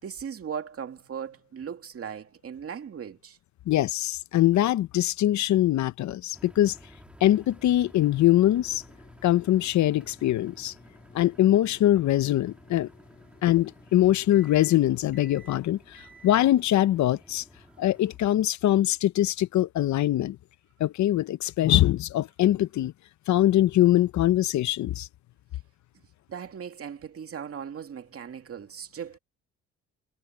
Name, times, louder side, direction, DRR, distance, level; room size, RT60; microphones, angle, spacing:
voice 1, 0.0-3.4 26.3-29.2, right 7 dB, 50° right, 2.4 m, -38 dB
voice 2, 3.7-6.8 7.2-8.8 9.2-10.7 11.1-12.9 13.4-17.4 17.8-20.4 20.8-22.9 23.3-25.1, left 13 dB, 70° left, 0.7 m, -23 dB
sound 1, 6.3-18.2, right 1 dB, 5° right, 2.7 m, -54 dB
sound 2, 7.9-18.2, left 1 dB, 30° left, 2.9 m, -55 dB
cardioid pair, 90°, 30 cm